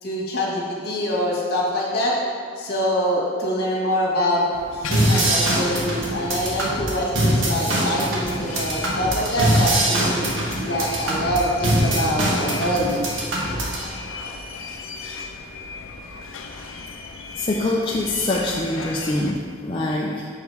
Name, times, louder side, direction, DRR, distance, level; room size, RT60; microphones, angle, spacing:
voice 1, 0.0-2.1 2.6-4.4 4.7-10.3 10.6-13.0, equal, 55° left, -4 dB, 1.6 m, -24 dB
sound 1, 4.5-19.3, left 3 dB, 85° left, 0.6 m, -36 dB
sound 2, 4.9-13.9, right 1 dB, 75° right, 1.3 m, -23 dB
voice 2, 17.4-20.3, left 2 dB, 25° left, -3 dB, 0.4 m, -24 dB
6.4 x 5.0 x 4.7 m, 2.1 s
head